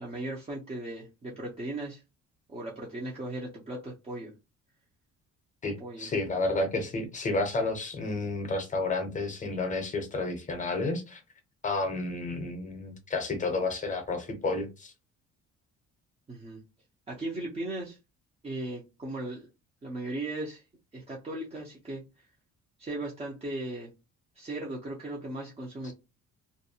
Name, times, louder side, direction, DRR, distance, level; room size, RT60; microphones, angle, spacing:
voice 1, 0.0-2.0 2.5-4.3 5.8-6.1 16.3-16.6 17.1-18.0 18.4-19.5 19.8-20.6 20.9-22.0 22.8-23.9 24.4-25.9, right 2 dB, 20° right, 0.6 m, -37 dB
voice 2, 5.6-11.2 11.6-14.9 25.8-25.9, left 2 dB, 25° left, 0.7 m, -31 dB
2.5 x 2.1 x 2.7 m
cardioid pair, 135°, 29 cm